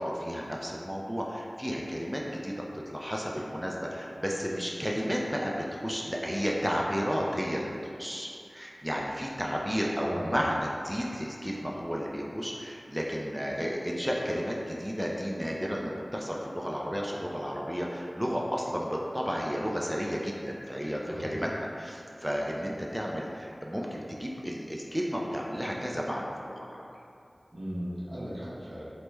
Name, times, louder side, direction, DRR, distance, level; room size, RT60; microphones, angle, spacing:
voice 1, 0.0-7.7 8.0-26.8, equal, 5° right, -2 dB, 0.3 m, -32 dB
voice 2, 10.0-10.5 21.1-21.4 27.5-28.9, equal, 75° right, -9 dB, 0.8 m, -37 dB
3.1 x 2.0 x 3.3 m, 2.5 s
wide cardioid pair, 45°, 0 cm